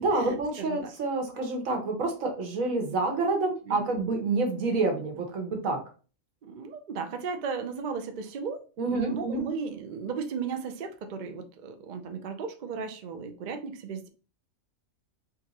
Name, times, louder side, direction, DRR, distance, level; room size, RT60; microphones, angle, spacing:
voice 1, 0.0-5.8 8.8-9.4, right 3 dB, 80° right, 3 dB, 1.5 m, -28 dB
voice 2, 3.7-4.0 6.4-8.6 8.9-14.1, right 5 dB, 55° right, 6 dB, 0.5 m, -35 dB
3.8 x 2.6 x 4.0 m, 0.36 s
omnidirectional pair, 1.4 m